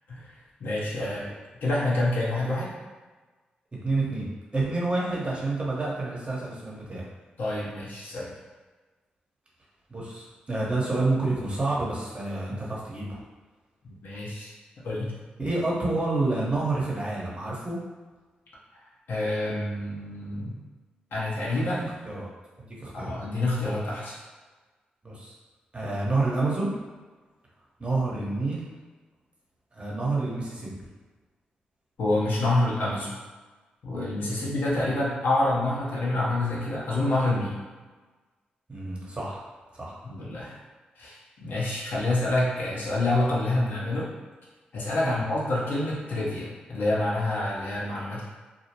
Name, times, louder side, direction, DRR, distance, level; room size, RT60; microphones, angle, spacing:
voice 1, 0.6-1.2 1.6-2.7 7.4-8.3 13.8-14.5 14.8-15.1 19.1-20.6 21.1-21.9 22.9-24.2 32.0-33.1 33.8-37.6 40.0-40.6 41.0-44.1 44.7-48.2, left 2 dB, 70° left, -6 dB, 0.7 m, -27 dB
voice 2, 3.8-4.3 4.5-7.0 9.9-13.2 15.4-17.8 21.5-22.3 22.6-23.1 25.0-25.3 25.7-26.7 27.8-28.6 29.7-30.9 34.2-34.4 38.7-39.4 39.7-40.0 45.0-45.2, right 2 dB, 35° right, -5 dB, 0.9 m, -29 dB
2.5 x 2.1 x 2.8 m, 1.3 s
supercardioid pair, 45°, 3 cm